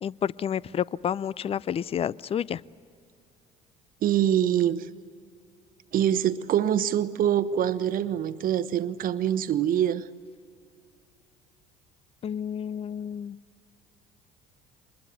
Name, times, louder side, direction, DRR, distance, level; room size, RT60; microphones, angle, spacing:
voice 1, 0.0-2.6 12.2-13.4, left 9 dB, 30° left, 0.5 m, -30 dB
voice 2, 4.0-4.9 5.9-10.0, right 10 dB, 45° right, 1.0 m, -24 dB
25.0 x 21.5 x 8.1 m
hypercardioid pair, 60°, 20 cm